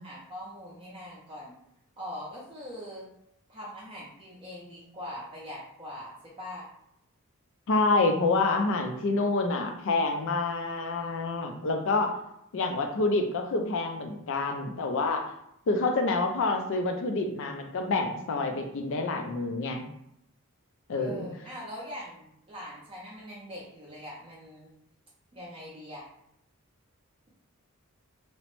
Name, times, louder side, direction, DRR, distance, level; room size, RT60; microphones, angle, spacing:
voice 1, 0.0-1.6 2.0-3.1 3.5-6.7 21.0-24.7 25.3-26.1, left 1 dB, 25° right, -6 dB, 0.5 m, -42 dB
voice 2, 7.7-12.2 12.5-15.3 15.7-19.8 20.9-21.3, left 3 dB, 60° left, 4 dB, 0.4 m, -27 dB
2.9 x 2.0 x 3.0 m, 0.78 s
head